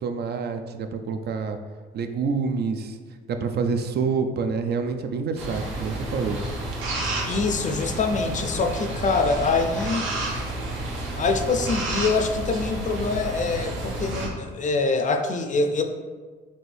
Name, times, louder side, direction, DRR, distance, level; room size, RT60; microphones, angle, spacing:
voice 1, 0.0-1.6 1.9-3.0 3.3-6.4, right 5 dB, 55° right, 7 dB, 0.4 m, -27 dB
sound 1, 5.4-14.3, right 2 dB, 80° right, 0.8 m, -30 dB
voice 2, 7.0-10.1 11.2-15.8, left 4 dB, 40° left, 6 dB, 0.4 m, -25 dB
4.2 x 2.6 x 3.3 m, 1.5 s
cardioid pair, 90°, 20 cm